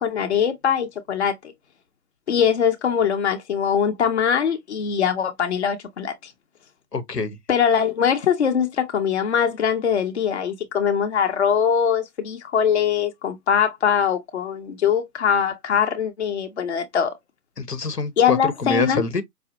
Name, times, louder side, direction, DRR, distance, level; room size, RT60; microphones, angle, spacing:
voice 1, 0.0-1.4 2.3-6.3 7.5-17.2 18.2-19.0, left 7 dB, 45° left, 0.7 m, -22 dB
voice 2, 6.9-7.4 17.6-19.2, left 4 dB, 85° left, 1.0 m, -26 dB
5.1 x 2.1 x 2.8 m
figure-of-eight pair, 140°, 47 cm